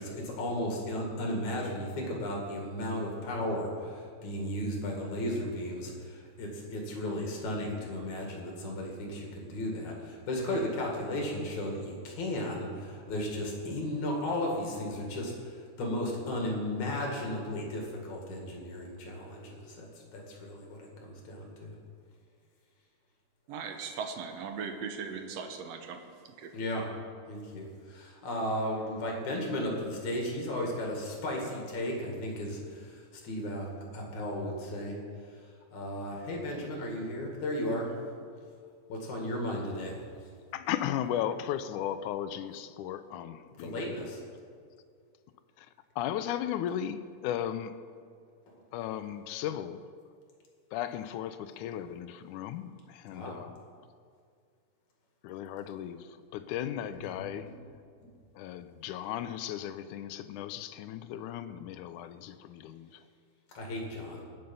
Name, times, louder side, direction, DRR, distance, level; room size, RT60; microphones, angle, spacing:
voice 1, 0.0-21.7 26.5-26.8 27.3-35.0 35.7-37.9 38.9-40.0 43.6-44.2 53.1-53.4 57.5-57.6 63.6-64.2, left 1 dB, 70° left, 0 dB, 3.5 m, -35 dB
voice 2, 23.5-26.5, right 5 dB, 65° right, 6 dB, 1.8 m, -39 dB
voice 3, 40.5-43.9 45.6-45.7 46.0-47.7 48.7-49.9 50.7-53.6 55.2-57.5 58.4-62.9, left 10 dB, 85° left, 12 dB, 2.0 m, -36 dB
20.5 x 6.9 x 5.5 m, 2.1 s
omnidirectional pair, 3.6 m